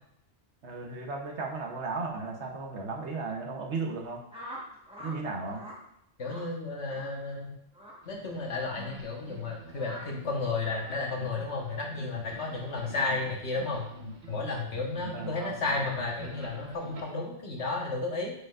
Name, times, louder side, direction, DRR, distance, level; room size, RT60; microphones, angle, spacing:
voice 1, 0.6-4.2 5.0-5.6 15.1-15.8, right 3 dB, 70° right, 1 dB, 1.2 m, -35 dB
sound 1, 4.3-5.2 5.5-5.8 6.2-6.5 6.9-7.1 7.7-8.0 8.7-8.9 9.8-10.1, equal, 5° right, 1.2 m, -44 dB
voice 2, 6.2-7.5 8.1-13.9 14.3-18.3, left 3 dB, 70° left, -1 dB, 1.5 m, -33 dB
sound 2, 8.0-17.0, right 1 dB, 45° right, 1.1 m, -46 dB
8.0 x 5.0 x 2.4 m, 0.76 s
omnidirectional pair, 1.2 m